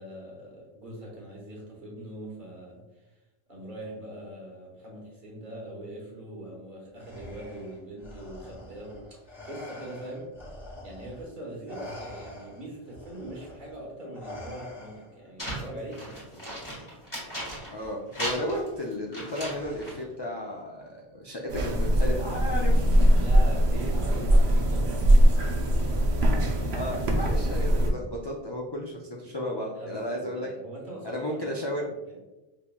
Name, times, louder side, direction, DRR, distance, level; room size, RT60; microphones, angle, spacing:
voice 1, 0.0-2.8 3.5-10.3 10.8-16.6 23.1-25.3 29.7-31.6 32.1-32.2, right 1 dB, 50° right, -3 dB, 1.3 m, -42 dB
Respiratory sounds, 7.0-11.3 11.7-15.3 16.6-16.8 17.7-18.3 19.5-20.1, left 1 dB, ahead, 1.4 m, -45 dB
sound 1, 15.4-17.9 18.1-20.0, equal, 20° left, 1.5 m, -36 dB
voice 2, 17.7-23.0 26.7-30.5 31.0-31.9, equal, 40° left, -2 dB, 0.3 m, -33 dB
sound 2, 21.5-27.9, equal, 80° right, 0.9 m, -22 dB
5.3 x 2.9 x 2.2 m, 1.0 s
omnidirectional pair, 1.1 m